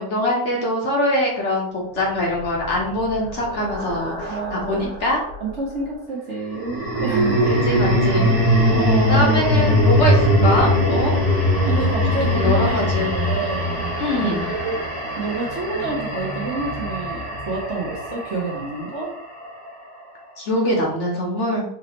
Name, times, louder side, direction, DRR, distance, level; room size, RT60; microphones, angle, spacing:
voice 1, 0.0-5.2 7.5-8.7 9.0-11.1 12.2-13.3 14.0-14.5 20.4-21.6, left 1 dB, 55° left, -2 dB, 1.0 m, -23 dB
sound 1, 2.4-4.9 6.5-18.8, equal, 40° right, 1.2 m, -21 dB
voice 2, 4.3-4.9 5.4-7.4 8.7-9.3 11.6-12.8 13.2-13.8 14.4-14.8 15.2-19.1, right 3 dB, 55° right, -3 dB, 0.9 m, -28 dB
4.0 x 2.9 x 2.9 m, 0.69 s
omnidirectional pair, 1.7 m